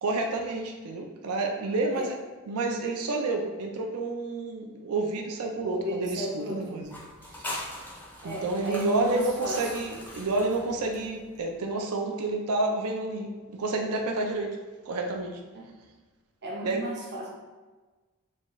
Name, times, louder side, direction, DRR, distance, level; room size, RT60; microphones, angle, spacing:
voice 1, 0.0-2.2 2.5-7.0 7.3-7.5 8.2-14.6 14.8-15.4 16.6-16.8, right 2 dB, 85° right, 2 dB, 0.5 m, -29 dB
voice 2, 5.6-6.8 8.2-9.6 15.5-15.6 16.4-17.3, equal, 50° right, -3 dB, 0.8 m, -34 dB
sound 1, 6.8-11.4, left 1 dB, 10° left, 0.4 m, -41 dB
4.2 x 2.4 x 3.0 m, 1.3 s
head